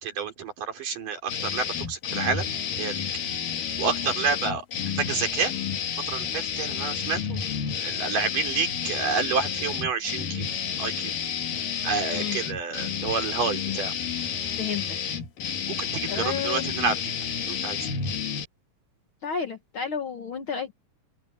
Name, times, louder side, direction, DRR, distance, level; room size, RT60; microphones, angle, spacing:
voice 1, 0.0-2.5 2.8-3.0 3.8-4.7 5.0-5.5 6.1-7.4 7.8-10.5 10.8-11.1 11.8-13.9 15.7-17.0 17.5-17.9, right 5 dB, 75° right, 5.5 m, -29 dB
sound 1, 1.3-18.5, left 7 dB, 90° left, 3.8 m, -30 dB
voice 2, 12.1-12.4 14.6-15.0 16.1-16.8 19.2-20.7, left 6 dB, 55° left, 1.6 m, -31 dB
open air
omnidirectional pair, 3.8 m